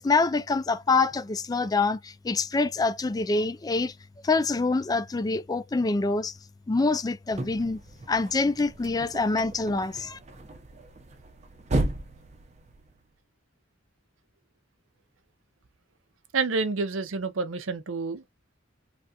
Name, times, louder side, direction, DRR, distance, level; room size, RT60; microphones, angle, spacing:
voice 1, 0.0-3.9 4.2-6.3 6.7-7.8 8.1-10.2, left 3 dB, 20° left, 0.3 m, -25 dB
sound 1, 7.3-13.2, right 2 dB, 35° right, 0.6 m, -35 dB
voice 2, 16.3-18.2, right 4 dB, 90° right, 0.6 m, -28 dB
3.2 x 2.4 x 2.7 m
head